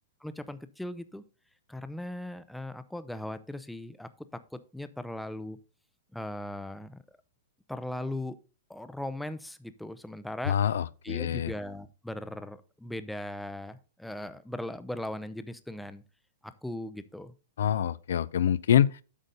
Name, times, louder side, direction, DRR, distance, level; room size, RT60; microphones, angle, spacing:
voice 1, 0.2-1.2 1.7-5.6 6.1-7.2 7.7-8.4 8.7-10.6 11.0-16.0 16.6-17.3, left 1 dB, ahead, 0.5 m, -38 dB
voice 2, 10.5-11.5 17.6-19.0, left 9 dB, 80° left, 0.4 m, -25 dB
8.3 x 5.1 x 3.9 m
hypercardioid pair, 145°, 0 cm